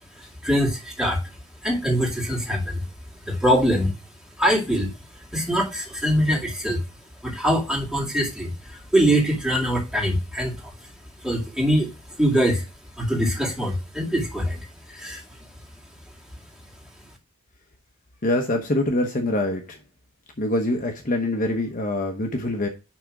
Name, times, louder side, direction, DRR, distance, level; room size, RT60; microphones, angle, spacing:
voice 1, 0.2-1.2 1.6-2.8 3.3-3.9 4.4-4.9 5.3-6.8 7.2-10.7 11.2-11.9 12.2-12.6 13.0-14.6 14.9-15.2, equal, 5° right, -2 dB, 2.3 m, -23 dB
voice 2, 18.2-19.8 20.4-22.7, left 1 dB, 40° left, 3 dB, 0.9 m, -24 dB
10.5 x 3.5 x 4.8 m, 0.29 s
head